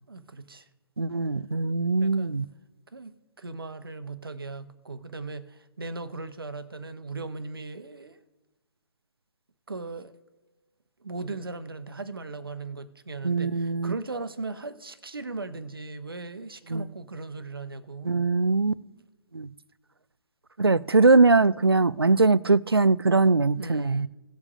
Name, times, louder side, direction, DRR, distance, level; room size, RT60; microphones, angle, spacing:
voice 1, 0.1-0.7 2.0-2.4 2.9-8.2 9.7-10.1 11.0-18.3 23.6-24.1, right 3 dB, 70° right, 1.0 m, -38 dB
voice 2, 1.0-2.4 13.2-13.9 16.7-16.9 18.0-18.7 19.3-19.5 20.6-24.1, right 3 dB, 85° right, 0.4 m, -21 dB
18.0 x 7.2 x 2.5 m
figure-of-eight pair, 135°, 12 cm